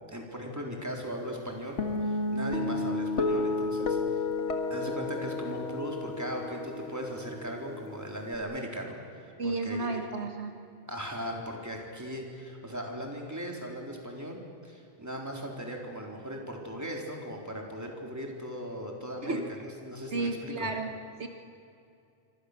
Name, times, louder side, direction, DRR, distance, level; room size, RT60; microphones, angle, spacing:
voice 1, 0.1-4.0 4.7-10.0 10.9-20.7, equal, 15° right, 0 dB, 3.9 m, -38 dB
Guitar, 1.8-8.3, left 3 dB, 85° left, 2.2 m, -32 dB
voice 2, 9.4-10.7 19.2-19.4 20.1-20.9 21.2-21.3, right 2 dB, 75° right, 4 dB, 1.8 m, -32 dB
27.0 x 25.0 x 6.8 m, 2.5 s
omnidirectional pair, 1.2 m